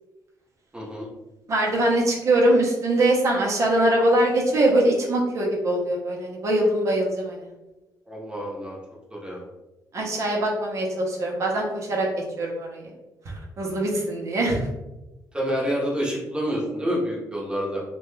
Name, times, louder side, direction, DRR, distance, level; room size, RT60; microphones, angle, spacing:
voice 1, 0.7-1.1 8.1-8.8 9.1-9.5 15.3-17.8, equal, 15° right, -4 dB, 0.9 m, -28 dB
voice 2, 1.5-7.5 9.9-12.1 12.4-12.9 13.3-14.7, right 1 dB, 45° right, -1 dB, 0.7 m, -22 dB
2.9 x 2.2 x 3.1 m, 1.0 s
cardioid pair, 135°, 7 cm